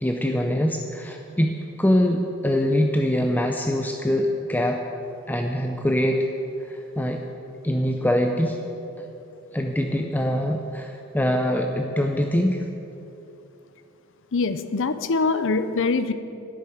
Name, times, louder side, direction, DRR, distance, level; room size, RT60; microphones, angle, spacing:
voice 1, 0.0-4.8 5.3-6.3 6.6-7.2 7.6-8.6 9.5-12.7, equal, 10° left, 3 dB, 0.5 m, -23 dB
voice 2, 14.3-16.1, left 4 dB, 60° left, 11 dB, 0.7 m, -23 dB
11.5 x 6.9 x 9.2 m, 2.8 s
head